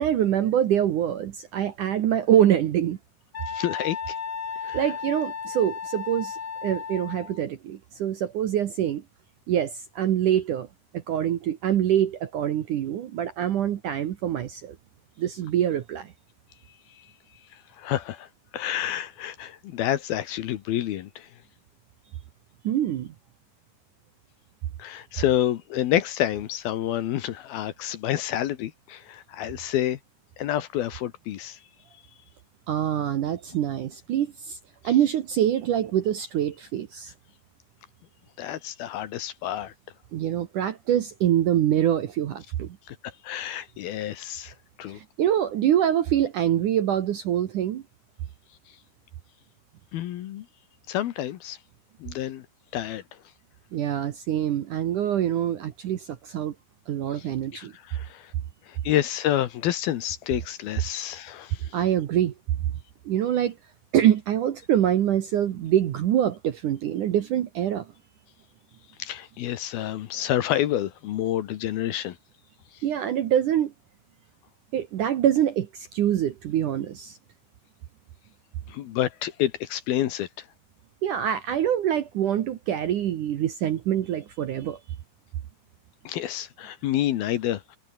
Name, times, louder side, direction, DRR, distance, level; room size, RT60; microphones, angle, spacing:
voice 1, 0.0-3.0 4.7-9.0 9.5-10.7 10.9-14.8 15.2-16.1 22.6-23.1 32.7-34.6 34.8-37.1 40.1-42.8 44.9-47.8 53.7-56.5 56.9-57.7 61.7-62.3 63.1-63.6 63.9-67.9 72.8-73.7 74.7-77.2 81.0-84.8, right 10 dB, 65° right, 2.1 m, -25 dB
Wind instrument woodwind instrument, 3.3-7.4, left 6 dB, 35° left, 3.3 m, -34 dB
voice 2, 3.5-4.2 4.6-4.8 16.9-17.1 17.5-21.3 24.8-30.0 30.4-31.6 38.4-39.7 42.9-45.0 49.9-50.5 50.9-51.6 52.0-52.5 52.7-53.2 57.1-58.3 58.7-61.8 69.0-72.2 72.7-72.8 78.7-80.5 86.0-87.8, left 12 dB, 70° left, 2.7 m, -29 dB
omnidirectional pair, 5.1 m